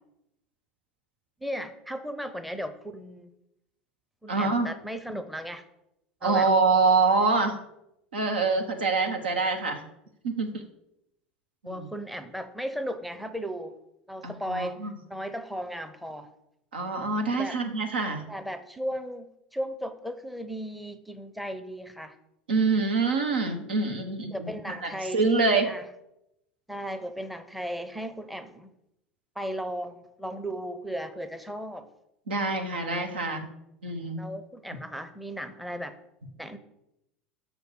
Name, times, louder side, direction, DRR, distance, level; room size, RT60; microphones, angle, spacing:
voice 1, 1.4-3.3 4.2-5.6 6.2-6.5 11.6-13.7 14.1-16.3 17.3-17.6 18.3-22.1 24.3-25.9 26.7-28.7 29.4-31.9 34.2-36.0 36.4-36.6, equal, ahead, 11 dB, 0.7 m, -35 dB
voice 2, 4.3-4.7 6.2-7.6 8.1-9.8 10.2-10.6 11.6-11.9 14.2-14.9 16.7-18.2 22.5-25.7 32.3-33.5 33.8-34.3, right 4 dB, 75° right, 4 dB, 1.2 m, -25 dB
6.4 x 5.2 x 6.5 m, 0.83 s
figure-of-eight pair, 75°, 5 cm